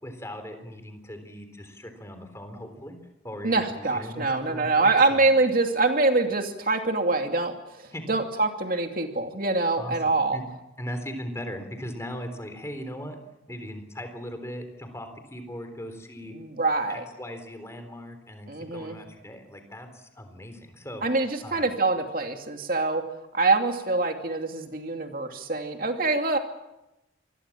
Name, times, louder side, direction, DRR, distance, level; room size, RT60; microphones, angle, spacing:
voice 1, 0.0-3.0 3.2-5.3 7.9-8.0 9.8-10.0 10.3-10.5 10.8-13.2 13.5-16.3 16.9-21.0 21.4-21.7, equal, 15° left, 7 dB, 3.8 m, -39 dB
voice 2, 3.4-10.4 16.3-17.0 18.5-19.0 21.0-23.1 23.3-26.4, right 3 dB, 50° right, 4 dB, 2.7 m, -25 dB
27.0 x 21.5 x 7.4 m, 0.92 s
head